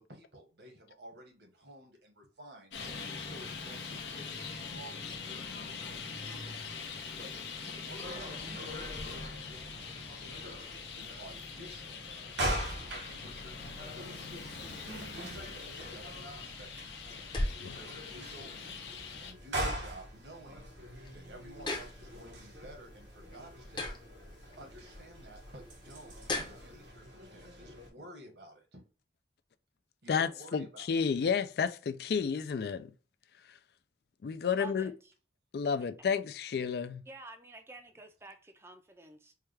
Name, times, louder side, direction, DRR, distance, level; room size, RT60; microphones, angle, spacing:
voice 1, 0.0-2.7 3.2-6.6 7.1-7.3 7.6-10.5 10.9-12.1 12.9-17.1 17.6-18.8 19.2-20.7 21.1-23.9 24.6-28.8 30.0-30.9, right 1 dB, 75° right, 1.3 m, -53 dB
Traffic noise roadway noise, 2.7-19.3, left 5 dB, 85° left, 0.8 m, -43 dB
sound 1, 8.0-27.9, right 1 dB, 90° right, 1.2 m, -42 dB
sound 2, 16.7-26.9, left 1 dB, 25° left, 0.7 m, -42 dB
voice 2, 30.1-32.9 34.2-34.9 35.5-37.0, left 6 dB, 60° left, 0.3 m, -31 dB
voice 3, 34.5-34.9 37.1-39.3, right 2 dB, 15° right, 0.4 m, -49 dB
4.6 x 2.3 x 3.3 m
head